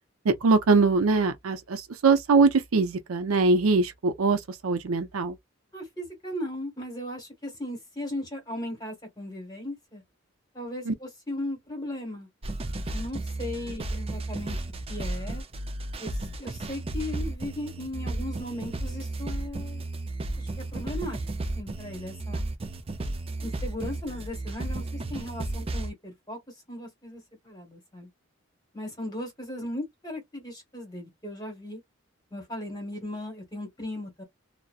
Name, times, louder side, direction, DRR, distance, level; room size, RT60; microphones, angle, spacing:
voice 1, 0.3-5.4 10.9-11.0, right 4 dB, 80° right, 0.5 m, -22 dB
voice 2, 5.7-10.0 10.5-12.3 12.9-14.6 14.9-15.4 16.0-19.8 20.4-21.2 21.5-22.4 23.4-26.4 26.7-28.1 28.7-31.8 32.3-34.2, left 1 dB, 20° left, 1.2 m, -37 dB
sound 1, 12.4-25.9, right 2 dB, 25° right, 0.4 m, -33 dB
2.5 x 2.1 x 2.3 m
head